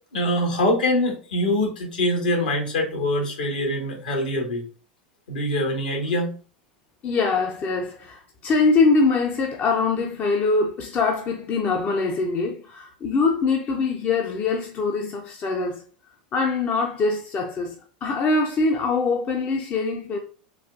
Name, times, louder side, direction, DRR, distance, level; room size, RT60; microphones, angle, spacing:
voice 1, 0.1-4.6 5.3-6.3, left 1 dB, 65° left, 1.3 m, -24 dB
voice 2, 7.0-15.8 16.3-17.8 18.0-20.2, left 4 dB, 30° left, 0.5 m, -23 dB
4.1 x 2.4 x 2.5 m
figure-of-eight pair, 85°, 5 cm